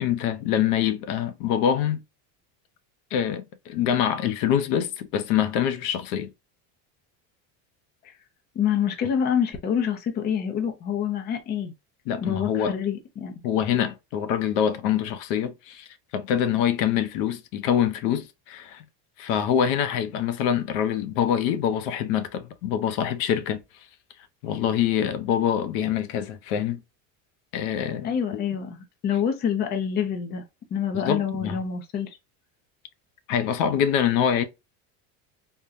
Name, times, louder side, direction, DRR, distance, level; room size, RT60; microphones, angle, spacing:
voice 1, 0.0-2.0 3.1-6.3 12.1-12.8 13.4-18.8 19.2-23.6 24.4-26.8 27.5-28.4 30.9-31.6 33.3-34.4, left 9 dB, 80° left, 0.7 m, -25 dB
voice 2, 8.6-11.7 12.2-13.4 28.0-30.4 30.7-32.2, left 8 dB, 25° left, 0.5 m, -27 dB
3.6 x 2.2 x 2.6 m
cardioid pair, 165°, 40 cm